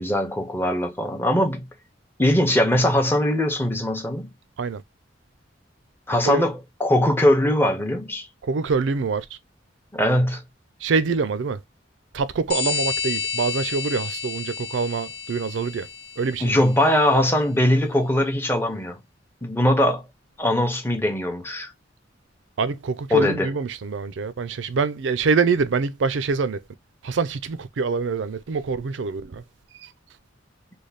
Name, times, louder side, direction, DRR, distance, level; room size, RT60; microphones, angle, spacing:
voice 1, 0.0-1.7 2.2-4.3 6.1-8.3 9.9-10.4 16.4-19.0 19.4-20.0 20.4-21.7 23.1-23.5, left 1 dB, 10° left, 0.6 m, -21 dB
voice 2, 8.4-9.3 10.8-11.6 12.1-15.9 16.2-16.6 22.6-26.6 27.0-29.4 29.8-29.9, right 4 dB, 75° right, 0.4 m, -25 dB
sound 1, 12.5-16.8, left 5 dB, 60° left, 0.7 m, -30 dB
3.3 x 2.2 x 3.9 m
head